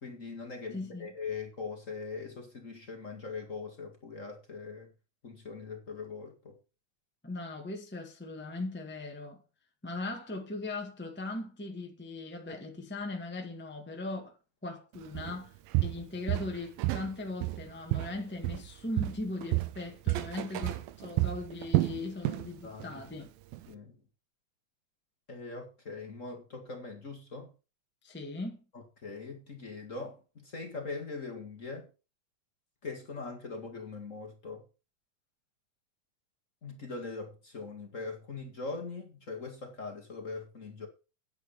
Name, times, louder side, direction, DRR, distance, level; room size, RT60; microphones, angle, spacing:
voice 1, 0.0-4.9 5.2-6.6 22.6-23.0 23.7-24.0 25.3-27.5 28.7-31.9 32.8-34.6 36.6-40.9, left 4 dB, 30° left, 1.6 m, -41 dB
voice 2, 0.7-1.1 7.2-9.4 9.8-14.3 14.6-15.6 15.8-23.3 28.0-28.6, left 2 dB, 10° left, 0.5 m, -39 dB
Walk footsteps, 15.2-15.4 15.7-17.1 17.4-18.7 19.0-22.5 22.8-23.1 23.5-23.6, right 18 dB, 85° right, 2.6 m, -30 dB
10.5 x 8.2 x 5.6 m
omnidirectional pair, 4.3 m